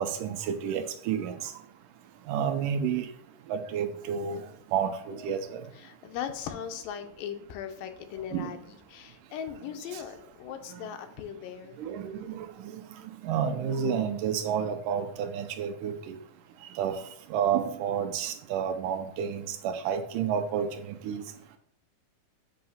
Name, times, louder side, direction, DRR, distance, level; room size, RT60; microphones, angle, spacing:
voice 1, 0.0-1.5 2.3-3.1 3.5-4.5 4.7-5.6 8.3-8.6 9.9-10.0 11.8-12.8 13.2-16.2 16.8-17.0 17.3-21.2, right 8 dB, 80° right, 8 dB, 2.0 m, -30 dB
voice 2, 5.7-11.8, left 9 dB, 90° left, 7 dB, 2.4 m, -39 dB
7.6 x 2.8 x 5.5 m, 0.69 s
omnidirectional pair, 3.8 m